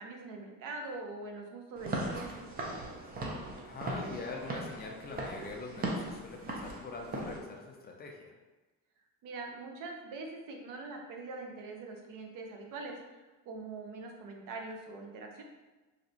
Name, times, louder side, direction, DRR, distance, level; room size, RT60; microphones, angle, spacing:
voice 1, 0.0-2.4 9.2-13.0 13.5-15.4, right 3 dB, 70° right, 2 dB, 0.7 m, -43 dB
Walk footsteps / Siren, 1.8-7.4, right 2 dB, 25° right, 0.5 m, -38 dB
voice 2, 3.6-8.3, left 3 dB, 30° left, 1 dB, 0.4 m, -43 dB
3.1 x 2.8 x 2.7 m, 1.2 s
cardioid pair, 130°, 34 cm